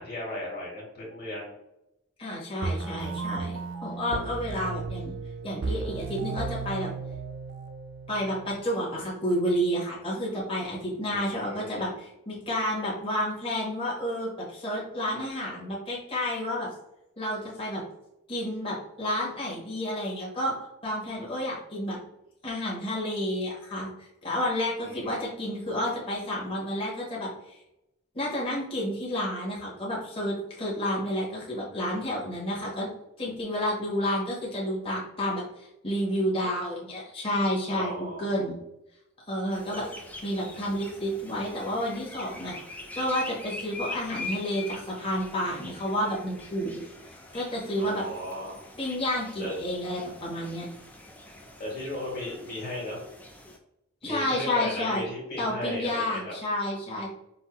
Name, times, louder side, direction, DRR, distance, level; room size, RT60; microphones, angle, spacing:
voice 1, 0.0-1.5 11.1-11.9 24.8-25.2 36.2-36.5 37.7-38.2 39.7-39.9 40.5-40.6 47.8-48.6 49.4-49.5 51.6-53.0 54.0-56.3, left 1 dB, 40° left, -5 dB, 1.5 m, -36 dB
voice 2, 2.2-5.1 5.4-6.9 8.1-16.7 17.2-17.8 18.3-22.0 22.4-27.6 28.1-32.9 33.2-38.5 39.3-39.9 40.2-46.8 47.3-48.0 48.8-50.7 54.0-55.0 55.4-57.1, equal, 25° left, -5 dB, 1.1 m, -30 dB
sound 1, 2.6-8.6, right 4 dB, 60° right, 0.5 m, -35 dB
sound 2, 39.5-53.6, left 2 dB, 5° left, 0.4 m, -43 dB
5.3 x 2.7 x 2.9 m, 0.86 s
head